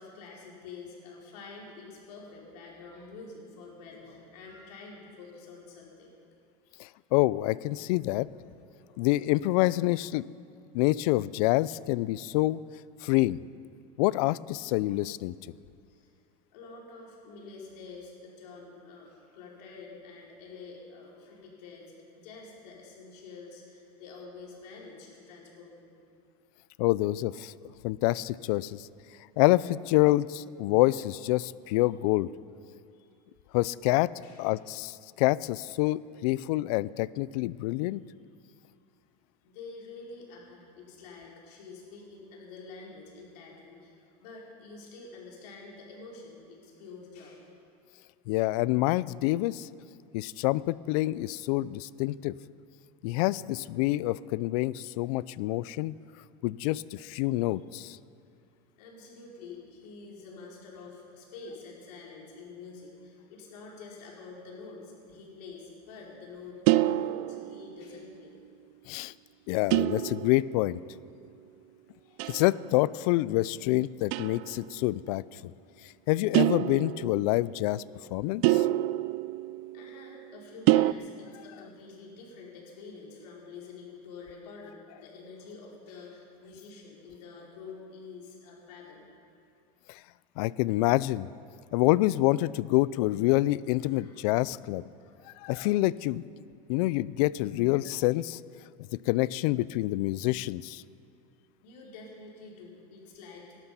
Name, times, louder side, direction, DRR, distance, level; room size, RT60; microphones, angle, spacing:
voice 1, 0.0-6.1 6.6-6.7 8.7-9.1 15.9-16.1 16.5-25.9 32.9-33.1 34.2-34.4 39.4-47.5 58.8-68.3 71.9-72.3 79.7-89.1 93.9-94.2 95.0-95.2 101.6-103.5, left 4 dB, 90° left, -3 dB, 4.8 m, -47 dB
voice 2, 6.8-8.3 9.0-10.2 10.7-12.6 13.0-13.4 14.0-15.3 26.8-27.5 27.8-28.9 29.4-32.3 33.5-38.0 48.3-49.7 50.1-52.4 53.0-55.9 56.4-58.0 68.9-69.1 69.5-70.8 72.3-75.5 76.1-77.8 78.1-78.7 89.9-90.0 90.4-91.3 91.7-94.8 95.4-96.2 96.7-98.4 99.1-100.8, left 18 dB, 70° left, 20 dB, 0.5 m, -27 dB
sound 1, 66.7-68.0 69.7-70.8 72.2-72.7 74.1-74.6 76.3-77.5 78.4-80.1 80.7-80.9, right 16 dB, 60° right, 0.4 m, -26 dB
19.0 x 12.0 x 5.7 m, 2.4 s
supercardioid pair, 150°, 20 cm